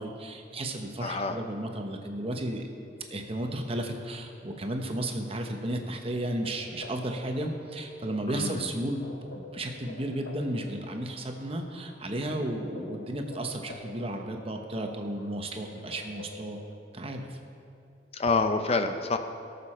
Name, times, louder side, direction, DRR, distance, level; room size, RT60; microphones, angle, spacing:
voice 1, 0.0-2.6 3.1-9.0 9.3-16.6 16.9-17.4, right 1 dB, 30° right, 4 dB, 1.0 m, -33 dB
voice 2, 1.0-1.4 8.3-8.7 18.1-19.2, left 3 dB, 35° left, 7 dB, 0.5 m, -27 dB
sound 1, 6.4-16.8, left 1 dB, 70° left, 1.0 m, -48 dB
18.0 x 6.9 x 4.4 m, 2.4 s
head